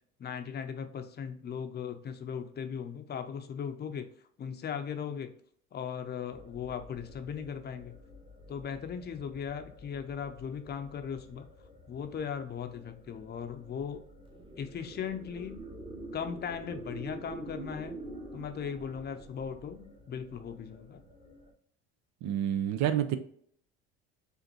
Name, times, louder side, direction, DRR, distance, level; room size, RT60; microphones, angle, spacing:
voice 1, 0.2-4.1 4.4-5.3 5.7-8.0 8.5-11.5 11.9-14.0 14.6-15.6 16.1-18.0 18.3-21.0, left 7 dB, 30° left, 8 dB, 0.6 m, -38 dB
spirit of the flame, 6.3-21.5, right 1 dB, 15° right, 1.1 m, -48 dB
voice 2, 22.2-23.2, right 10 dB, 55° right, 10 dB, 0.5 m, -28 dB
4.9 x 2.5 x 3.0 m, 0.63 s
hypercardioid pair, 80°, 32 cm